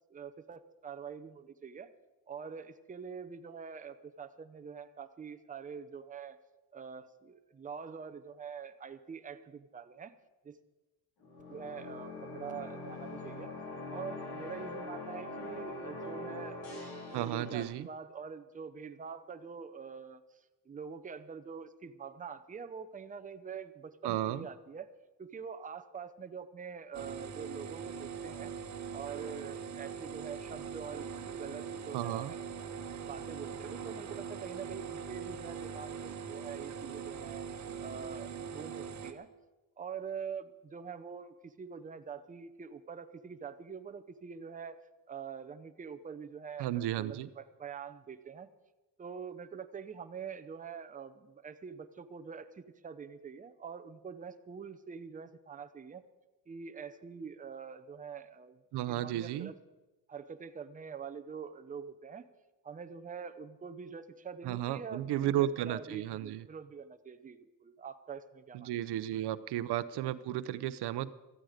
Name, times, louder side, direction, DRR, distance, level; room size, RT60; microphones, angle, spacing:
voice 1, 0.1-1.9 2.3-6.4 6.7-10.1 10.4-10.6 11.5-13.5 13.9-20.2 20.7-24.9 25.2-28.5 28.9-32.7 33.1-37.5 37.8-39.3 39.8-44.8 45.1-48.5 49.0-56.0 56.5-58.6 58.9-59.5 60.1-62.2 62.6-68.7, right 6 dB, 20° right, 9 dB, 0.7 m, -45 dB
sound 1, 11.2-17.6, left 2 dB, 75° left, 4.8 m, -43 dB
voice 2, 17.1-17.9 24.0-24.5 31.9-32.3 46.6-47.3 58.7-59.5 64.4-66.4 68.5-71.1, right 12 dB, 90° right, 15 dB, 0.7 m, -33 dB
sound 2, 26.9-39.1, right 7 dB, 45° right, 1.3 m, -42 dB
17.0 x 13.5 x 5.1 m, 1.1 s
cardioid pair, 140°, 39 cm